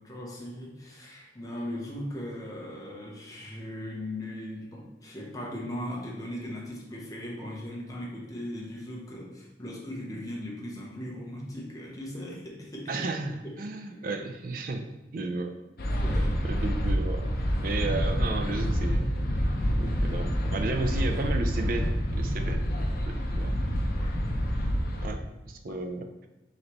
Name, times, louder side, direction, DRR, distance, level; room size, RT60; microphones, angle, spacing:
voice 1, 0.0-12.9 13.4-13.6 13.9-14.0 16.0-16.4 23.9-24.2 25.7-25.8, left 1 dB, 20° left, -2 dB, 0.8 m, -38 dB
voice 2, 12.9-14.9 15.1-15.5 16.4-17.3 17.6-19.1 19.8-22.7 23.0-23.6 25.0-25.2 25.5-26.1, right 3 dB, 50° right, 6 dB, 0.4 m, -33 dB
sound 1, 15.8-25.1, equal, 50° left, 0.6 m, -27 dB
5.0 x 3.1 x 3.0 m, 1.0 s
head